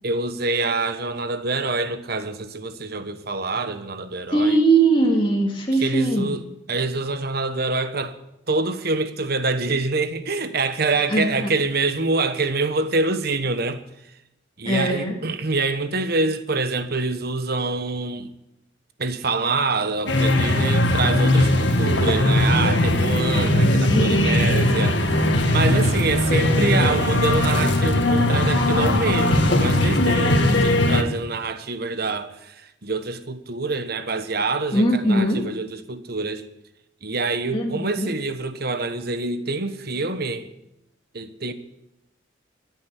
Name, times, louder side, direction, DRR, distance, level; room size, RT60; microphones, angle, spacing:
voice 1, 0.0-4.6 5.7-8.2 8.5-13.8 14.6-18.3 19.0-25.2 25.4-36.5 37.0-40.5 41.1-41.5, right 3 dB, 55° right, 1.2 m, -26 dB
voice 2, 4.3-6.3 11.1-11.5 14.6-15.2 23.9-24.3 34.7-35.5 37.5-38.1, right 2 dB, 25° left, 2.6 m, -20 dB
sound 1, 20.1-31.0, left 1 dB, 65° left, 1.9 m, -19 dB
14.0 x 9.6 x 9.9 m
head